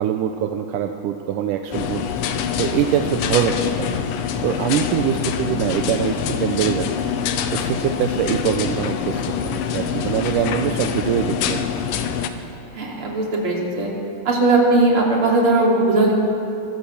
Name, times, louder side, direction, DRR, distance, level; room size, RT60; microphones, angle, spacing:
voice 1, 0.0-2.0 2.6-4.0 4.4-6.9 7.5-11.6, right 9 dB, 75° right, 5 dB, 2.0 m, -23 dB
sound 1, 1.7-12.3, left 7 dB, 70° left, 2.4 m, -25 dB
voice 2, 5.4-5.9 12.7-13.9 14.2-16.1, right 2 dB, 35° right, -2 dB, 3.9 m, -19 dB
24.0 x 16.5 x 7.1 m, 2.7 s
omnidirectional pair, 4.5 m